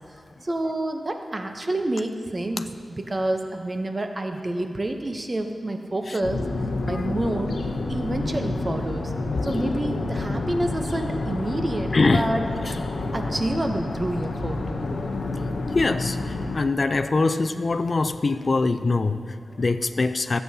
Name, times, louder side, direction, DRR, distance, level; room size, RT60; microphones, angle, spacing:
voice 1, 0.4-6.4 6.8-7.5 7.9-9.1 9.4-12.8 13.1-14.6, right 1 dB, 30° right, 5 dB, 0.7 m, -28 dB
sound 1, 6.2-16.6, left 2 dB, 80° left, 0.7 m, -29 dB
voice 2, 11.9-12.3 15.7-20.4, left 3 dB, 45° left, 9 dB, 0.4 m, -23 dB
18.5 x 6.9 x 2.7 m, 2.3 s
wide cardioid pair, 85°, 0 cm